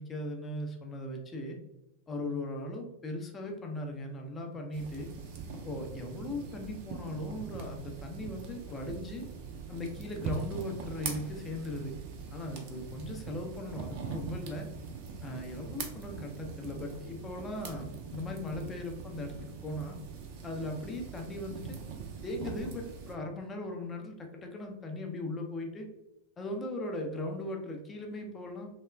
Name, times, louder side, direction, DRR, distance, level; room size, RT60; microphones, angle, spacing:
voice 1, 0.0-1.6 2.1-5.1 5.5-9.3 9.7-11.9 12.3-14.7 15.2-20.0 20.4-21.8 22.2-25.9 26.4-28.7, left 1 dB, 20° left, 2 dB, 0.5 m, -38 dB
sound 1, 4.7-23.1, right 5 dB, 45° right, 0.4 m, -42 dB
3.0 x 2.1 x 2.2 m, 0.91 s
figure-of-eight pair, 90°, 0 cm